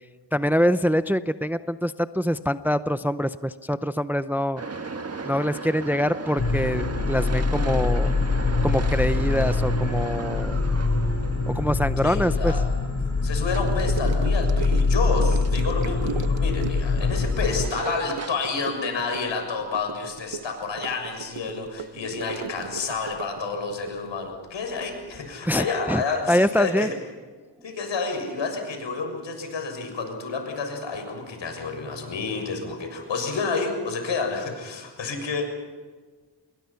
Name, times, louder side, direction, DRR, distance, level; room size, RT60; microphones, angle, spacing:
voice 1, 0.3-4.6 5.2-8.1 8.6-10.6 11.5-12.5 25.4-26.0 26.3-26.9, equal, 5° right, 12 dB, 0.6 m, -24 dB
sound 1, 4.6-19.3, right 4 dB, 35° right, 1.6 m, -38 dB
sound 2, 6.4-17.7, left 3 dB, 40° left, 3.1 m, -24 dB
voice 2, 12.0-12.6 13.2-26.9 27.6-35.5, left 4 dB, 75° left, 4 dB, 6.8 m, -29 dB
Gurgling / Sink (filling or washing) / Trickle dribble, 13.6-25.3 25.5-25.9 26.1-26.2, right 8 dB, 75° right, 1.1 m, -37 dB
28.5 x 22.5 x 5.8 m, 1.4 s
wide cardioid pair, 100°, 45 cm